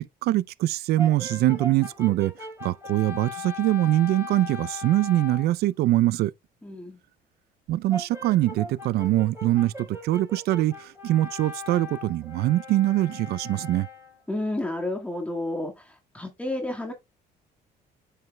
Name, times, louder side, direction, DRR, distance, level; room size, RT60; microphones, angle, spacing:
voice 1, 0.0-2.3 2.6-6.3 7.7-13.9, right 15 dB, 70° right, 0.4 m, -23 dB
Brass instrument, 1.0-5.5 7.9-14.2, left 3 dB, 15° right, 4.5 m, -39 dB
voice 2, 6.6-7.0 14.3-16.9, left 1 dB, 5° left, 1.7 m, -31 dB
8.6 x 6.7 x 2.2 m
cardioid pair, 110°, 17 cm